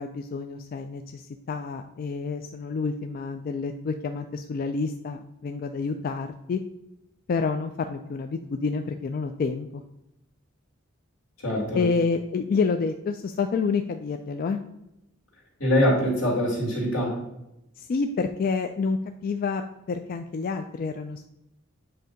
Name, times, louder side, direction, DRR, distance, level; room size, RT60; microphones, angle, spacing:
voice 1, 0.0-6.6 7.3-9.8 11.7-14.6 17.8-19.6 19.9-21.2, left 4 dB, 45° left, 6 dB, 0.3 m, -28 dB
voice 2, 11.4-11.8 15.6-17.2, equal, 80° left, -3 dB, 2.3 m, -23 dB
7.8 x 2.7 x 5.1 m, 0.86 s
head